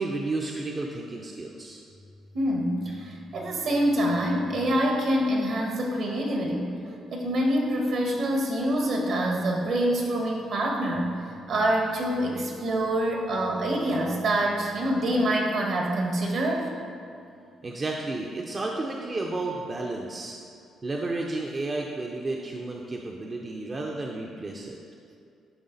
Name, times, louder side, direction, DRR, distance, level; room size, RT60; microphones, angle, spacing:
voice 1, 0.0-1.8 17.6-20.4 20.8-24.8, right 2 dB, 35° right, 0 dB, 0.6 m, -32 dB
voice 2, 2.3-11.2 11.5-16.7, right 1 dB, 65° right, -1 dB, 1.5 m, -26 dB
10.5 x 3.6 x 4.0 m, 2.4 s
cardioid pair, 90°, 0 cm